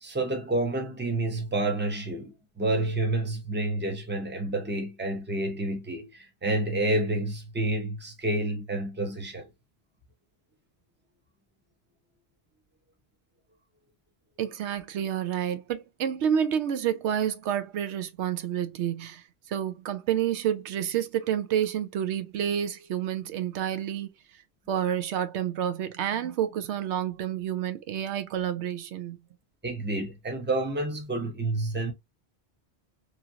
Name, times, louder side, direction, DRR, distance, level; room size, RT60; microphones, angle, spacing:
voice 1, 0.0-9.5 29.6-31.9, right 2 dB, 10° right, 0.7 m, -29 dB
voice 2, 14.4-24.1 24.7-29.2, right 9 dB, 90° right, 0.9 m, -29 dB
3.0 x 2.5 x 2.7 m
omnidirectional pair, 1.1 m